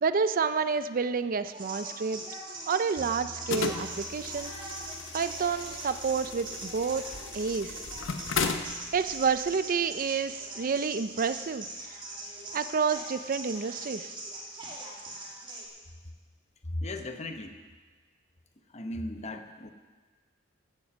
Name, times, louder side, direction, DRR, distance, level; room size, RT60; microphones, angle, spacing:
voice 1, 0.0-2.2 2.7-4.5 5.1-7.0 7.3-7.8 8.9-11.7 12.5-14.1, right 5 dB, 45° right, 12 dB, 0.5 m, -29 dB
sound 1, 1.5-15.7, right 2 dB, 25° right, 2.5 m, -41 dB
sound 2, 3.0-13.0, left 2 dB, 85° left, 1.9 m, -54 dB
sound 3, 3.5-9.5, left 5 dB, 65° left, 0.9 m, -36 dB
voice 2, 16.7-17.5 18.7-19.7, left 1 dB, 35° left, 6 dB, 1.0 m, -36 dB
15.0 x 9.3 x 6.1 m, 1.4 s
head